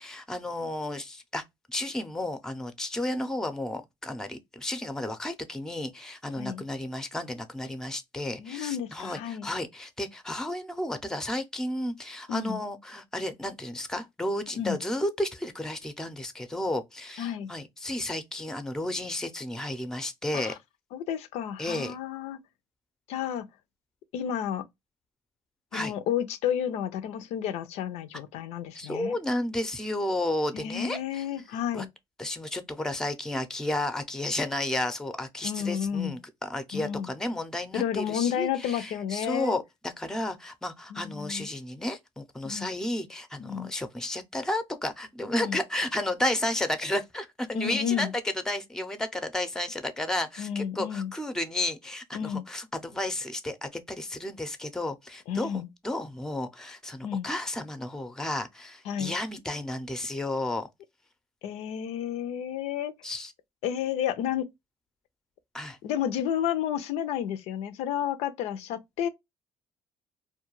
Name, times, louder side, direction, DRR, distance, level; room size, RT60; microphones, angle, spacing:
voice 1, 0.0-1.4 1.7-20.6 21.6-22.0 25.7-25.9 28.7-31.3 31.7-31.9 32.2-48.1 48.5-60.7 63.0-63.3 65.5-65.8, left 1 dB, 5° left, 0.5 m, -32 dB
voice 2, 8.4-9.5 12.3-12.6 14.6-14.8 17.2-17.5 20.3-20.5 20.9-22.4 23.1-23.5 24.1-24.6 25.7-29.2 30.5-31.9 35.4-36.2 36.7-37.1 37.7-39.6 40.9-41.5 42.4-42.7 43.4-43.7 45.4-45.6 47.5-48.1 50.4-51.1 52.1-52.5 55.3-55.7 57.0-57.3 58.9-59.1 61.4-62.9 63.6-64.5 65.8-69.1, left 9 dB, 85° left, 0.4 m, -31 dB
2.3 x 2.2 x 2.9 m
cardioid pair, 85°, 11 cm